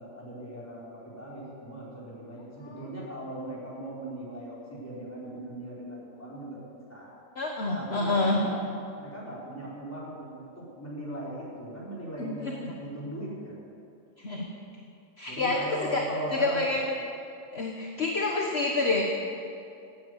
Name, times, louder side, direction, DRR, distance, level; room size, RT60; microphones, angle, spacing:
voice 1, 0.0-6.6 6.9-7.1 7.7-8.6 8.9-13.5 15.2-16.8, right 1 dB, 10° left, -7 dB, 4.4 m, -38 dB
voice 2, 7.4-8.4 12.2-12.3 12.6-12.7 14.2-14.5 15.2-15.6 15.9-16.0 16.4-16.8 17.5-19.0, left 2 dB, 45° left, 0 dB, 1.5 m, -27 dB
17.0 x 9.6 x 8.1 m, 2.6 s
omnidirectional pair, 1.5 m